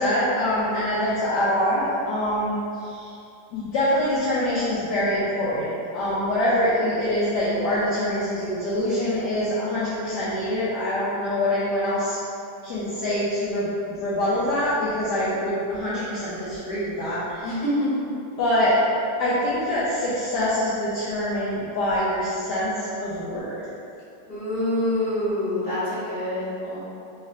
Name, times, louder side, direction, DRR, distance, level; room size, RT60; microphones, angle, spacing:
voice 1, 0.0-3.1 3.5-12.2 12.6-17.6 18.4-18.8 19.2-23.6, left 1 dB, 70° left, -9 dB, 1.1 m, -25 dB
voice 2, 24.3-26.8, left 1 dB, 35° left, -11 dB, 1.4 m, -27 dB
3.3 x 3.1 x 3.6 m, 2.7 s
omnidirectional pair, 2.1 m